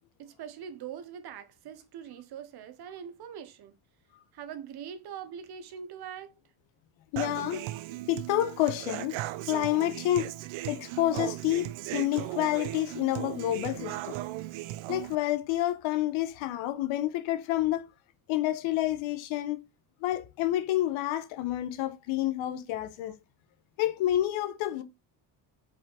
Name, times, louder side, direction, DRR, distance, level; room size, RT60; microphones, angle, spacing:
voice 1, 0.2-3.7 4.3-6.3 7.5-7.9 23.1-23.2, right 8 dB, 55° right, 1.0 m, -43 dB
voice 2, 7.1-7.7 8.1-9.2 9.4-10.3 10.7-14.2 14.9-17.9 18.3-19.6 20.0-23.2 23.8-24.8, left 14 dB, 80° left, 0.9 m, -29 dB
Human voice / Acoustic guitar, 7.2-15.1, right 15 dB, 75° right, 0.7 m, -37 dB
5.0 x 4.8 x 3.9 m
cardioid pair, 125°, 46 cm